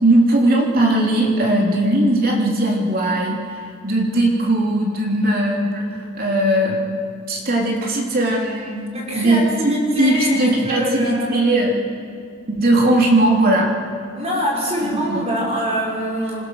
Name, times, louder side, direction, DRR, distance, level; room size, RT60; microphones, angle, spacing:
voice 1, 0.0-5.9 6.2-6.8 7.3-8.8 9.2-11.7 12.5-13.7 14.8-15.3, right 1 dB, 45° right, -1 dB, 3.2 m, -18 dB
voice 2, 8.9-11.5 14.1-16.4, equal, 30° right, -3 dB, 6.0 m, -24 dB
27.0 x 16.0 x 6.6 m, 2.3 s
head